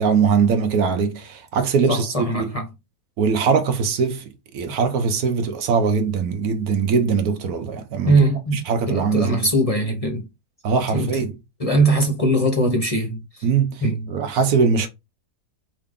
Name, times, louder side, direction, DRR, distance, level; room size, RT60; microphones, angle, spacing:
voice 1, 0.0-2.5 3.2-4.2 4.5-8.2 8.5-9.5 10.6-11.3 13.4-13.8 14.1-14.9, right 5 dB, 65° right, 1.2 m, -21 dB
voice 2, 1.9-2.7 8.0-10.3 10.9-11.2 11.6-13.4 13.8-14.1, right 1 dB, 30° left, 0.6 m, -21 dB
5.0 x 2.8 x 3.6 m
omnidirectional pair, 1.8 m